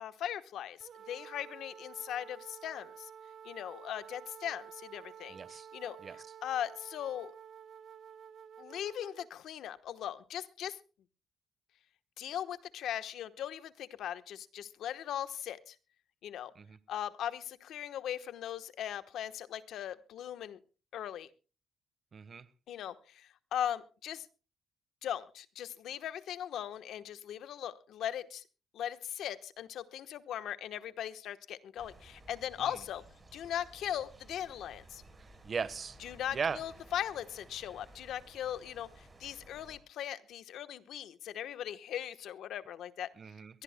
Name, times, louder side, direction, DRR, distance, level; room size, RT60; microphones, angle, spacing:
voice 1, 0.0-3.1 3.4-7.3 8.6-10.8 12.2-15.8 16.2-16.5 16.9-20.6 20.9-21.3 22.7-24.3 25.0-28.4 28.7-33.0 33.3-35.0 36.0-43.1 43.5-43.6, left 10 dB, 75° left, 1.1 m, -39 dB
sound 1, 0.8-9.3, right 8 dB, 70° right, 1.5 m, -51 dB
voice 2, 5.3-5.7 6.0-6.2 16.6-16.8 22.1-22.5 35.4-36.0 36.3-36.6 43.2-43.5, right 5 dB, 45° right, 1.1 m, -37 dB
sound 2, 31.8-39.8, right 2 dB, 25° right, 4.7 m, -57 dB
23.0 x 18.5 x 2.2 m
cardioid pair, 90°, 0 cm